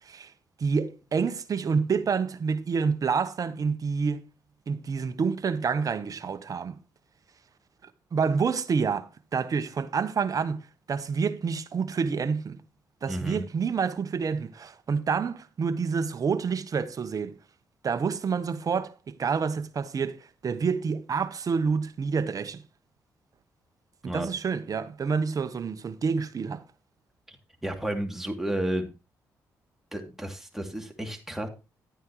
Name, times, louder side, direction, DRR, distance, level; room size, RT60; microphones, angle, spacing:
voice 1, 0.6-4.2 4.7-6.8 8.1-12.6 13.0-17.4 17.8-22.6 24.0-26.6, right 5 dB, 50° right, 1.1 m, -28 dB
voice 2, 13.1-13.4 24.0-24.3 27.3-27.4 27.6-28.9 29.9-31.5, right 1 dB, 5° right, 2.7 m, -32 dB
11.5 x 9.3 x 3.1 m
supercardioid pair, 55°, 8 cm